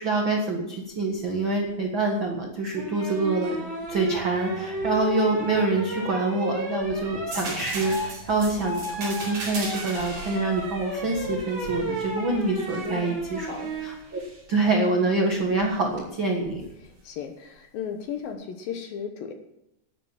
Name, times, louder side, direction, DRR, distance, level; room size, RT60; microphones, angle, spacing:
voice 1, 0.0-3.6 3.9-13.5 13.8-14.2 14.5-16.6, right 2 dB, 65° right, 1 dB, 1.2 m, -26 dB
sound 1, 2.7-13.9 15.6-16.0, right 1 dB, 25° right, 6.4 m, -33 dB
sound 2, 4.1-12.0, right 3 dB, 15° left, 2.0 m, -48 dB
sound 3, 7.3-12.9 13.4-14.4 16.5-16.6, right 2 dB, 45° right, 5.8 m, -38 dB
voice 2, 12.8-13.2 13.5-13.7 16.8-19.3, left 7 dB, 70° left, 6 dB, 2.5 m, -35 dB
11.5 x 10.5 x 7.4 m, 0.83 s
omnidirectional pair, 5.0 m